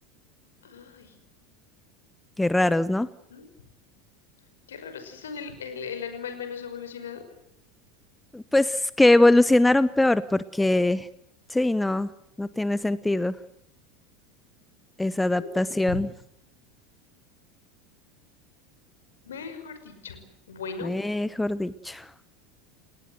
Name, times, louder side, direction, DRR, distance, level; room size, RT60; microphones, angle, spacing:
voice 1, 0.6-1.2 3.3-3.5 4.7-7.2 15.3-15.6 15.9-16.1 19.2-21.0, left 6 dB, 70° left, 8 dB, 5.6 m, -38 dB
voice 2, 2.4-3.1 8.3-11.1 11.5-12.1 12.4-13.3 15.0-16.1 20.8-22.0, left 2 dB, 5° left, 17 dB, 0.9 m, -22 dB
30.0 x 19.0 x 7.8 m, 0.76 s
figure-of-eight pair, 75°, 0 cm